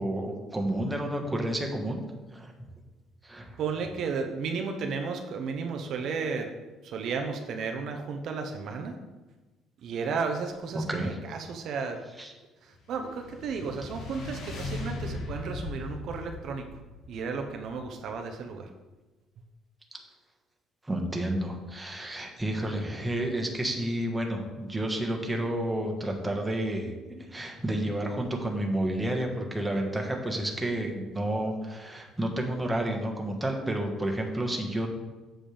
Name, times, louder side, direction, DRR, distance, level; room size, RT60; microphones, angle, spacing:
voice 1, 0.0-2.0 2.3-2.5 3.2-3.6 10.7-11.1 12.2-12.3 20.8-26.9 27.3-34.9, right 1 dB, 10° right, 1 dB, 1.4 m, -30 dB
voice 2, 3.6-6.5 6.8-8.9 9.8-12.0 12.6-16.8 17.1-18.7, right 5 dB, 65° right, 4 dB, 0.8 m, -33 dB
sound 1, 12.8-18.2, left 2 dB, 70° left, 1.7 m, -39 dB
7.4 x 7.4 x 3.4 m, 1.2 s
cardioid pair, 100°, 0 cm